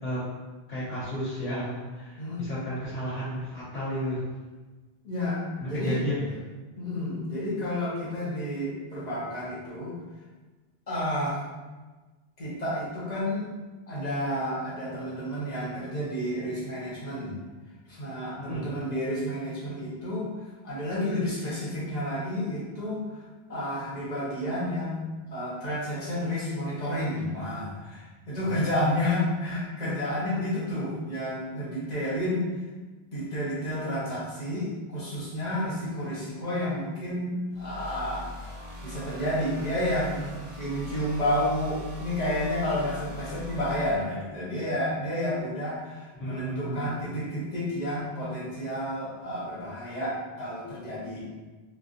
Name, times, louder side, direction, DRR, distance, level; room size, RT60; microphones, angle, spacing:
voice 1, 0.7-4.2 5.6-6.3 18.4-18.7 28.4-28.5 46.2-47.0, equal, 70° left, -16 dB, 1.4 m, -32 dB
voice 2, 5.0-6.0 6.8-9.9 10.9-11.4 12.4-13.5 13.9-17.3 17.9-20.3 20.6-23.2 23.5-25.0 25.3-32.5 33.1-38.3 38.8-51.4, left 1 dB, 45° left, -7 dB, 1.0 m, -30 dB
sound 1, 37.5-43.9, left 1 dB, 45° right, 0.6 m, -41 dB
3.3 x 2.5 x 2.5 m, 1.3 s
omnidirectional pair, 1.1 m